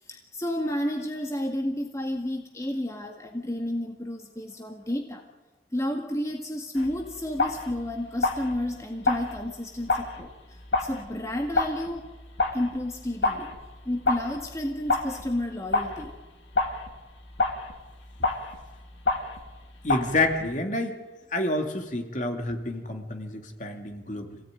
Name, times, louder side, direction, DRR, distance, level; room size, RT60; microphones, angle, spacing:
voice 1, 0.0-5.2 5.7-12.1 12.5-13.5 13.8-16.1, left 1 dB, 15° left, 2 dB, 1.8 m, -31 dB
sound 1, 6.8-20.6, left 3 dB, 85° left, 2.5 m, -30 dB
voice 2, 19.8-21.0 21.3-24.4, left 2 dB, 45° left, 4 dB, 2.6 m, -28 dB
26.5 x 17.5 x 9.2 m, 1.2 s
head